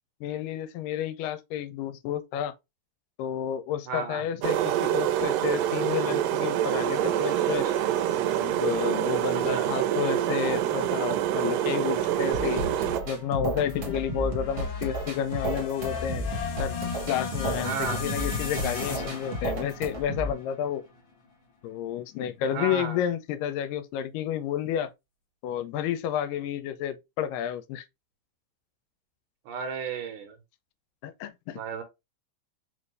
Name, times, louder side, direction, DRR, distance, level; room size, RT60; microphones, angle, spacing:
voice 1, 0.2-2.5 3.2-7.7 8.4-12.6 13.1-16.3 16.6-16.8 17.1-20.8 21.6-24.9 25.4-27.8 31.0-31.6, left 9 dB, 85° left, 2.1 m, -31 dB
voice 2, 3.9-4.3 9.5-9.7 17.6-18.1 22.5-23.0 29.5-30.4 31.5-31.8, right 6 dB, 75° right, 2.3 m, -33 dB
sound 1, 4.4-13.0, right 11 dB, 90° right, 2.3 m, -26 dB
sound 2, 12.3-20.3, equal, 55° right, 1.5 m, -33 dB
sound 3, 12.7-21.0, left 4 dB, 60° left, 1.3 m, -36 dB
5.1 x 2.5 x 3.2 m
omnidirectional pair, 3.9 m